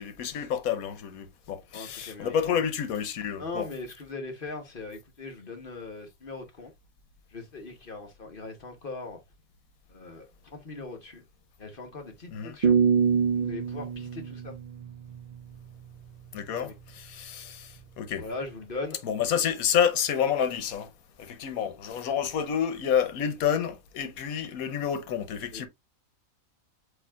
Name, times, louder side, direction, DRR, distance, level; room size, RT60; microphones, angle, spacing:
voice 1, 0.0-3.7 12.3-12.6 16.3-18.2 19.0-20.9 21.2-25.7, left 8 dB, 85° left, 1.2 m, -29 dB
voice 2, 1.7-2.6 3.4-6.7 7.3-9.2 9.9-11.2 11.6-12.8 13.3-14.5 16.6-16.7 18.2-19.0 25.5-25.7, left 3 dB, 40° left, 1.1 m, -40 dB
sound 1, 12.6-15.6, right 6 dB, 75° right, 0.4 m, -25 dB
8.0 x 2.8 x 2.3 m
omnidirectional pair, 1.5 m